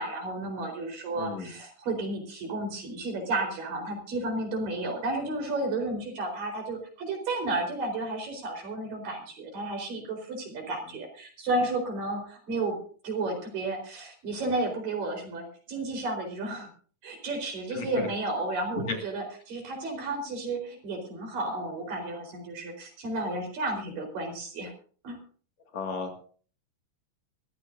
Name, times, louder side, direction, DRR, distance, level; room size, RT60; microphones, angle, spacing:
voice 1, 0.0-12.8 13.0-16.7 17.0-24.7 25.0-25.2, right 2 dB, 80° right, 3 dB, 6.1 m, -32 dB
voice 2, 1.1-1.5 17.7-18.1 18.9-19.0 25.7-26.2, left 4 dB, 55° left, 4 dB, 3.3 m, -34 dB
22.5 x 14.5 x 2.7 m, 0.42 s
omnidirectional pair, 3.9 m